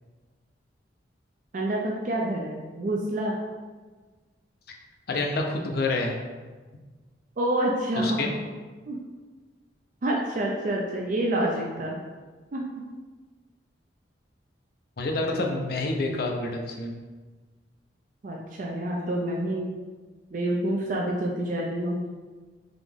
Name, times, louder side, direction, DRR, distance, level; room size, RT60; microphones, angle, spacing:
voice 1, 1.5-3.4 7.4-8.3 8.9-9.0 10.0-12.0 12.5-12.6 18.2-19.7 20.3-22.0, right 1 dB, 45° right, -2 dB, 0.4 m, -27 dB
voice 2, 5.1-6.2 8.0-8.3 15.0-16.9, left 2 dB, 55° left, 2 dB, 0.5 m, -28 dB
3.8 x 3.0 x 3.5 m, 1.4 s
head